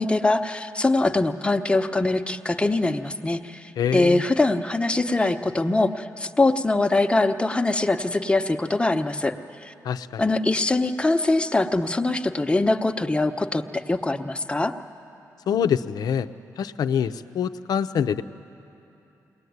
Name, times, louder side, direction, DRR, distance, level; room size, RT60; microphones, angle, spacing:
voice 1, 0.0-9.3 9.6-9.7 10.2-14.7, left 2 dB, 15° left, 6 dB, 1.0 m, -23 dB
voice 2, 3.8-4.2 9.8-10.2 15.5-16.3 16.6-18.2, left 8 dB, 75° left, 11 dB, 0.7 m, -25 dB
22.0 x 19.0 x 9.5 m, 2.9 s
cardioid pair, 75°, 7 cm